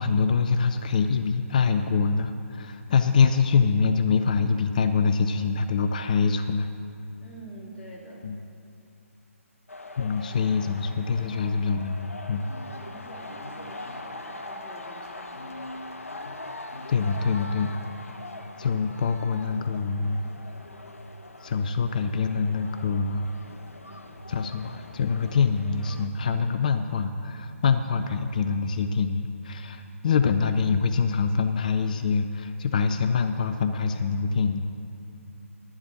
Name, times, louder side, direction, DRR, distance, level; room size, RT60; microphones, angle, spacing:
voice 1, 0.0-6.7 8.2-8.4 10.0-12.4 16.9-17.7 18.6-20.2 21.4-23.3 24.3-34.6, left 5 dB, 35° left, 8 dB, 0.4 m, -25 dB
voice 2, 7.2-8.3 10.1-10.5 12.7-15.6, right 1 dB, 10° left, -9 dB, 3.0 m, -47 dB
sound 1, 9.7-26.1, left 2 dB, 70° left, 1.0 m, -42 dB
11.5 x 7.2 x 7.4 m, 2.6 s
figure-of-eight pair, 140°, 8 cm